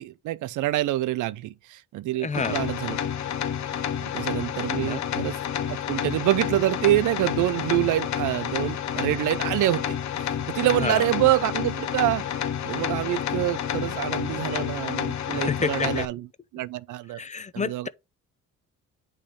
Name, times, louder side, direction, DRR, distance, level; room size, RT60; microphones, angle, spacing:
voice 1, 0.0-3.0 4.0-5.4 5.7-10.0 10.5-16.3 16.5-17.2 17.5-17.9, right 15 dB, 80° right, 0.5 m, -26 dB
voice 2, 2.2-2.6 4.8-5.1 10.6-11.1 14.3-14.5 15.3-16.1 17.1-17.9, left 5 dB, 25° left, 0.5 m, -30 dB
sound 1, 2.3-16.1, left 9 dB, 65° left, 0.8 m, -29 dB
8.5 x 3.2 x 5.1 m
cardioid pair, 90°, 30 cm